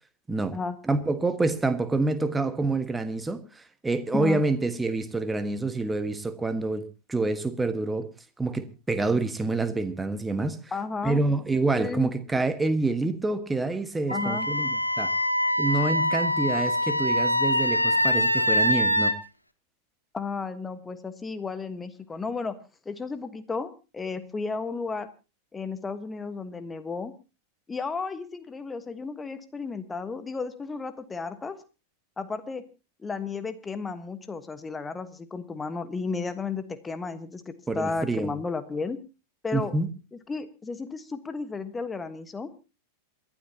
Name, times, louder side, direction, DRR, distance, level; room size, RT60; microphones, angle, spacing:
voice 1, 0.8-6.8 7.1-8.1 8.4-10.6 11.0-15.1 15.6-19.1 37.7-38.3 39.5-39.9, right 3 dB, 10° right, 1.5 m, -27 dB
voice 2, 10.7-11.2 11.8-12.1 14.1-14.5 20.1-22.5 22.8-25.1 25.5-27.1 27.7-31.6 32.2-32.6 33.0-39.0 39.4-39.7 40.1-42.5, left 4 dB, 15° left, 1.4 m, -33 dB
Wind instrument woodwind instrument, 14.1-19.1, left 1 dB, 90° left, 1.1 m, -24 dB
27.5 x 12.0 x 2.9 m
figure-of-eight pair, 90°, 0 cm